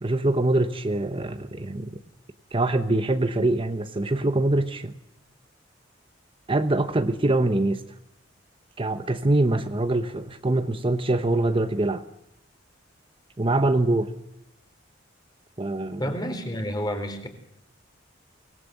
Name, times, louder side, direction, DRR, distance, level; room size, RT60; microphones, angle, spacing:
voice 1, 0.0-1.9 2.5-4.9 6.5-7.8 8.8-12.0 13.4-14.1 15.6-16.1, right 2 dB, 25° right, 8 dB, 1.0 m, -24 dB
voice 2, 16.0-17.3, equal, 20° left, 7 dB, 3.9 m, -29 dB
25.0 x 19.0 x 7.9 m, 0.81 s
head